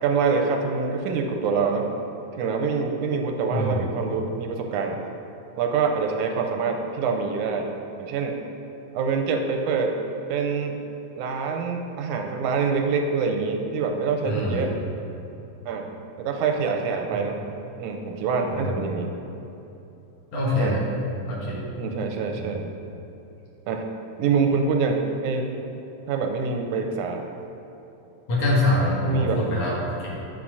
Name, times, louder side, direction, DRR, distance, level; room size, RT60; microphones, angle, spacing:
voice 1, 0.0-1.9 2.3-5.0 5.6-8.4 8.9-9.9 10.3-10.8 11.2-14.7 15.7-15.9 16.2-17.4 17.8-19.1 20.6-20.8 21.8-22.7 23.7-23.9 24.2-25.5 26.1-27.2 29.0-29.4, right 5 dB, 85° right, 4 dB, 2.0 m, -25 dB
voice 2, 3.5-3.9 14.2-14.6 18.5-18.8 20.3-20.8 21.3-21.6 22.4-22.5 28.3-30.1, left 1 dB, 60° left, -5 dB, 2.4 m, -24 dB
9.7 x 4.2 x 6.1 m, 2.9 s
omnidirectional pair, 3.6 m